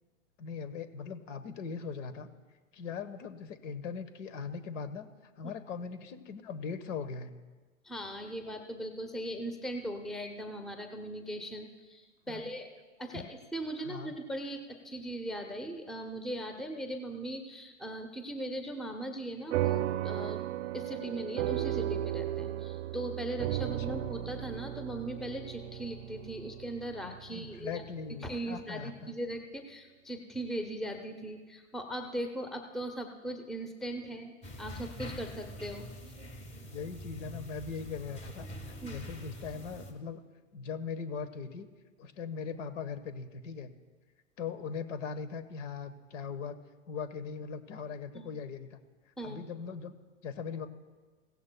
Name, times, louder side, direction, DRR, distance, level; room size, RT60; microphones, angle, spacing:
voice 1, 0.4-2.3 2.7-5.1 5.4-7.3 12.3-12.4 13.1-13.3 13.8-14.1 23.9-24.0 27.3-29.1 36.6-40.2 40.5-41.7 42.0-43.7 44.4-46.6 46.9-48.8 49.2-50.0 50.2-50.7, left 5 dB, 70° left, 11 dB, 1.2 m, -40 dB
voice 2, 7.8-12.7 13.0-20.5 20.7-27.8 28.2-35.9 38.8-39.0 48.1-48.3 49.2-49.4, right 1 dB, ahead, 5 dB, 0.6 m, -39 dB
sound 1, 19.5-28.3, right 13 dB, 65° right, 0.6 m, -35 dB
sound 2, 34.4-39.9, equal, 15° left, 1.5 m, -45 dB
16.5 x 16.0 x 2.2 m, 1.3 s
hypercardioid pair, 125°, 39 cm